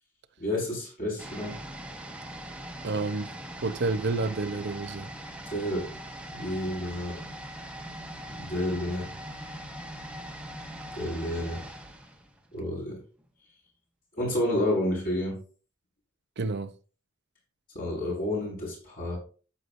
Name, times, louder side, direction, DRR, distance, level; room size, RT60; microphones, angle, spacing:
voice 1, 0.4-1.6 5.5-5.9 6.3-7.2 8.3-9.1 11.0-11.6 12.5-13.0 14.2-15.4 17.7-19.2, left 1 dB, 45° left, 5.6 m, -30 dB
sound 1, 1.2-12.9 13.2-13.3, right 1 dB, 5° right, 1.2 m, -41 dB
voice 2, 2.8-3.3 3.6-5.1 16.4-16.7, right 3 dB, 55° right, 0.7 m, -29 dB
14.0 x 6.8 x 2.6 m
head